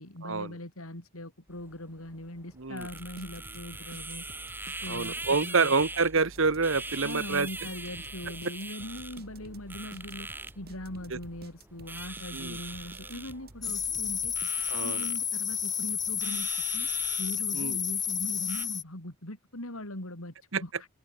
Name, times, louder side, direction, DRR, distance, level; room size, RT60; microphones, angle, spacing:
voice 1, 0.0-4.2 4.8-5.7 7.0-10.3 10.6-14.3 14.8-16.9 17.2-20.9, left 1 dB, 85° left, 5.3 m, -41 dB
sound 1, 1.5-18.7, right 2 dB, 10° right, 5.5 m, -42 dB
sound 2, 2.8-15.0, right 1 dB, 45° right, 4.2 m, -50 dB
voice 2, 4.9-7.5 11.1-11.2 12.3-12.6 14.7-15.0 17.5-17.8 20.5-20.6, right 4 dB, 65° right, 1.2 m, -27 dB
sound 3, 13.6-18.8, left 7 dB, 20° left, 0.8 m, -31 dB
open air
head